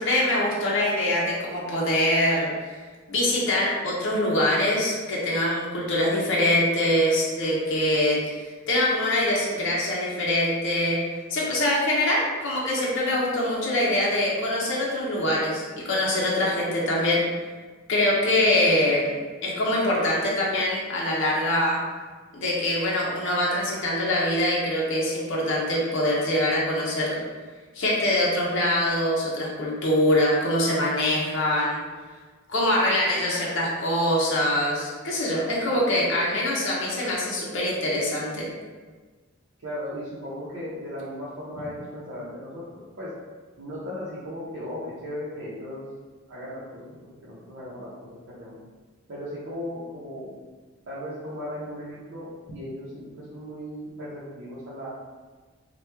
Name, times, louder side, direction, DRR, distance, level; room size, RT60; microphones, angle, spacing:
voice 1, 0.0-2.8 3.1-11.0 11.3-17.2 17.9-21.8 22.3-27.2 27.7-31.8 32.5-38.5, left 1 dB, 60° left, -5 dB, 0.7 m, -24 dB
voice 2, 39.6-42.6 43.0-43.1 43.6-45.9 46.3-48.5 49.1-50.4 50.9-54.9, equal, 60° right, -10 dB, 0.6 m, -37 dB
2.9 x 2.2 x 3.3 m, 1.4 s
head